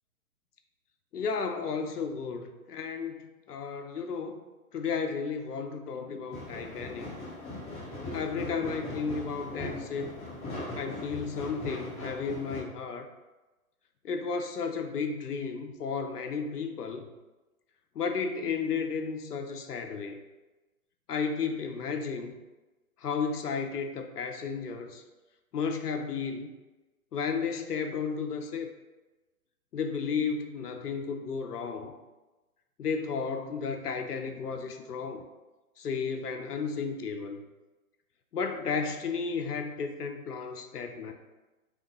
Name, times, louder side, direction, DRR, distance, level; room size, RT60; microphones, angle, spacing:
voice 1, 1.1-4.4 4.7-7.1 8.1-10.2 10.8-13.1 14.0-17.1 18.0-20.2 21.1-22.3 23.0-25.0 25.5-26.5 27.1-28.7 29.7-32.0 32.8-35.3 35.8-37.4 38.3-41.1, left 5 dB, 85° left, 6 dB, 0.7 m, -33 dB
sound 1, 6.3-12.6, left 2 dB, 15° left, 1.2 m, -39 dB
5.6 x 2.7 x 3.0 m, 1.1 s
hypercardioid pair, 135°, 45 cm